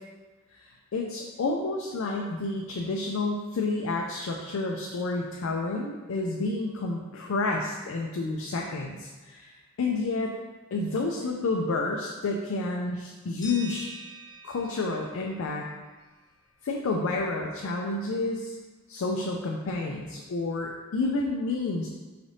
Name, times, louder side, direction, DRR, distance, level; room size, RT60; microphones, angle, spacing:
voice 1, 0.5-9.5 9.8-10.3 10.7-13.9 14.4-15.7 16.6-18.5 18.9-21.9, left 3 dB, 70° left, 0 dB, 0.4 m, -30 dB
sound 1, 13.4-16.3, right 2 dB, 20° left, 1.2 m, -45 dB
4.8 x 3.2 x 2.7 m, 1.3 s
head